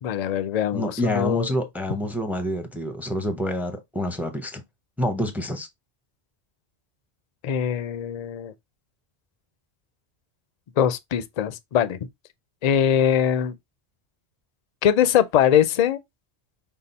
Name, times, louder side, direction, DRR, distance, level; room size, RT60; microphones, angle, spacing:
voice 1, 0.0-1.5 7.4-8.5 10.8-12.0 12.6-13.5 14.8-16.0, left 9 dB, 55° left, 0.4 m, -22 dB
voice 2, 0.7-4.6 5.0-5.7, left 1 dB, ahead, 0.5 m, -27 dB
5.6 x 2.0 x 3.9 m
omnidirectional pair, 1.1 m